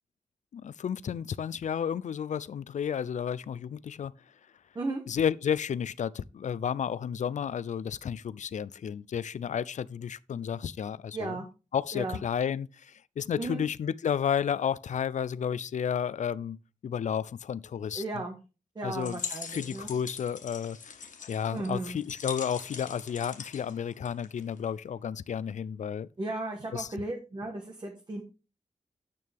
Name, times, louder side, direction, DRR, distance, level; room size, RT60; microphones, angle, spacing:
voice 1, 0.5-4.1 5.1-11.4 11.7-16.6 16.8-18.0 18.8-19.2 19.5-21.0 21.3-26.1 26.7-26.9, left 8 dB, 70° left, 0.4 m, -32 dB
voice 2, 11.1-11.5 11.9-12.2 13.4-13.6 17.9-18.4 18.7-19.9 21.5-22.0 26.2-28.2, right 2 dB, 35° right, 1.4 m, -35 dB
sound 1, 18.9-24.6, left 6 dB, 85° left, 1.5 m, -42 dB
9.4 x 8.5 x 3.5 m
wide cardioid pair, 170°, 13 cm